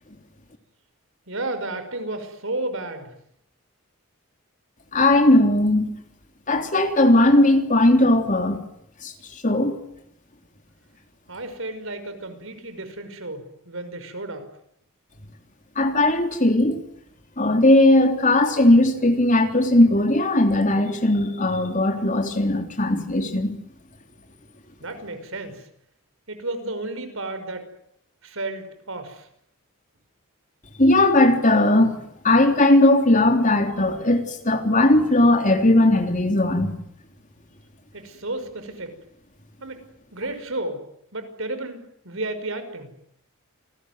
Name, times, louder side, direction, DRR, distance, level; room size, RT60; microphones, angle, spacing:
voice 1, 1.3-3.1 11.3-14.5 24.8-25.6 26.3-27.7 28.2-29.3 37.9-38.9 39.6-39.8 40.1-40.8 41.1-42.9, right 2 dB, 65° right, 5.7 m, -32 dB
voice 2, 4.9-5.9 6.5-8.6 9.0-9.1 9.4-9.8 15.8-16.8 17.4-23.6 30.8-36.8, left 1 dB, 35° left, 3.5 m, -18 dB
29.0 x 21.0 x 9.5 m
head